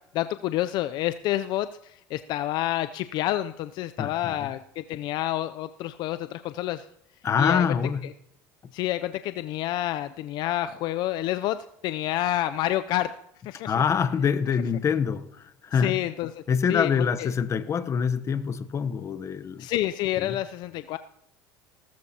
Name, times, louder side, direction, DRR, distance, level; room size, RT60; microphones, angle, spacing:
voice 1, 0.1-6.8 7.4-7.6 8.7-13.1 13.4-13.7 15.8-16.4 16.7-17.3 19.6-21.0, left 14 dB, 60° left, 0.5 m, -28 dB
voice 2, 4.0-4.5 7.2-8.1 13.6-16.0 16.5-19.7 20.2-20.4, left 6 dB, 35° left, 0.9 m, -25 dB
18.0 x 13.5 x 2.9 m
supercardioid pair, 100°, 9 cm